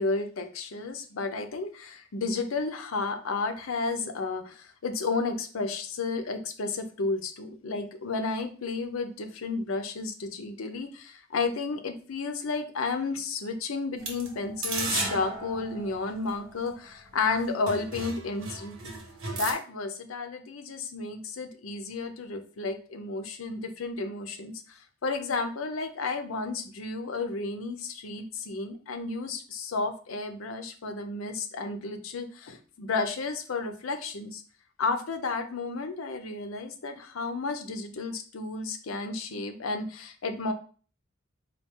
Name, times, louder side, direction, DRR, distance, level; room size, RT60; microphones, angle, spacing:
voice 1, 0.0-19.0 19.3-34.4 34.8-40.5, left 3 dB, 85° left, 7 dB, 0.6 m, -32 dB
sound 1, 14.0-16.7 17.3-17.4 17.7-19.5, right 3 dB, 90° right, 1.2 m, -35 dB
4.1 x 2.3 x 3.5 m, 0.41 s
head